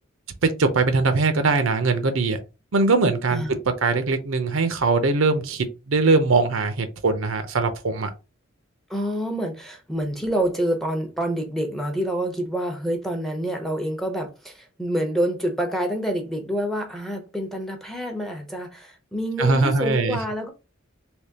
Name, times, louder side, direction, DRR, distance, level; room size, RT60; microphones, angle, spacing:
voice 1, 0.4-2.4 2.7-3.4 3.8-8.1 19.4-20.2, right 3 dB, 75° right, 0.6 m, -21 dB
voice 2, 8.9-20.5, equal, ahead, 0.7 m, -27 dB
3.5 x 2.9 x 2.8 m
head